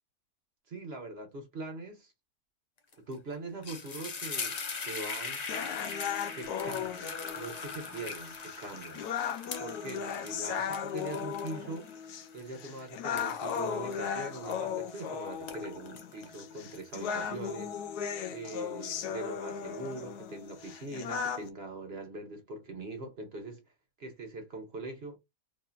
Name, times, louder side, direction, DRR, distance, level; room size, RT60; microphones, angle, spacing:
voice 1, 0.7-2.1 3.1-5.4 6.3-9.1 9.6-11.9 12.3-17.7 18.3-23.6 24.0-25.2, right 2 dB, 45° right, 1.2 m, -42 dB
sound 1, 2.9-3.1 3.4-15.0 15.3-17.3, left 4 dB, 50° left, 0.4 m, -41 dB
sound 2, 5.5-21.5, left 7 dB, 85° left, 1.2 m, -37 dB
4.1 x 2.7 x 2.3 m
omnidirectional pair, 1.7 m